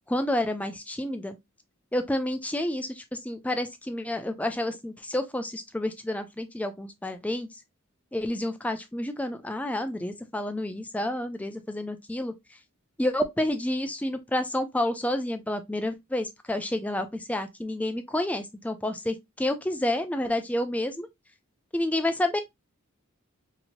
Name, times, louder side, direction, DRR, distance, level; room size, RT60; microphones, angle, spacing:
voice 1, 0.1-1.4 1.9-7.6 8.1-12.3 13.0-21.1 21.7-22.4, left 1 dB, 5° left, 0.3 m, -29 dB
2.9 x 2.8 x 2.5 m
head